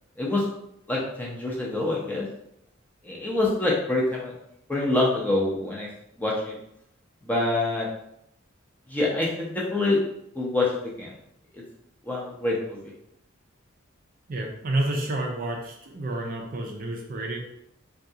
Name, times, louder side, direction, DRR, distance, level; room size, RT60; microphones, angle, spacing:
voice 1, 0.9-2.3 3.0-4.3 4.7-5.9 6.2-6.6 7.2-7.9 8.9-10.0 10.3-11.1 11.5-11.6 12.0-12.9, left 2 dB, 10° left, -4 dB, 0.6 m, -26 dB
voice 2, 14.3-17.4, right 1 dB, 40° right, 1 dB, 0.4 m, -29 dB
3.6 x 2.3 x 2.8 m, 0.76 s
head